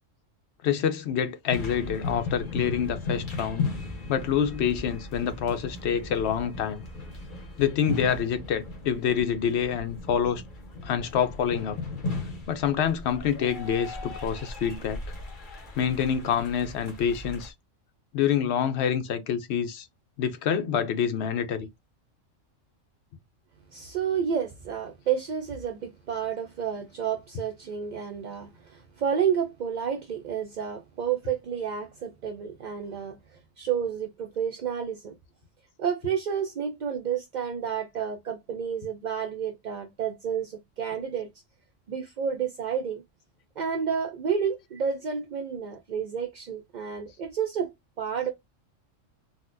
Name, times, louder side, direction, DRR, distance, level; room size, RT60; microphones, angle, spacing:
voice 1, 0.6-3.7 4.1-6.8 7.6-10.4 10.8-11.7 12.5-15.0 15.8-17.5 18.1-19.9 20.2-21.7, left 8 dB, 65° left, 0.8 m, -27 dB
sound 1, 1.5-17.5, left 3 dB, 40° left, 1.1 m, -36 dB
voice 2, 23.7-35.1 35.8-41.3 41.9-43.0 43.6-47.7 48.0-48.3, right 7 dB, 65° right, 0.4 m, -30 dB
4.0 x 2.2 x 2.5 m
omnidirectional pair, 1.3 m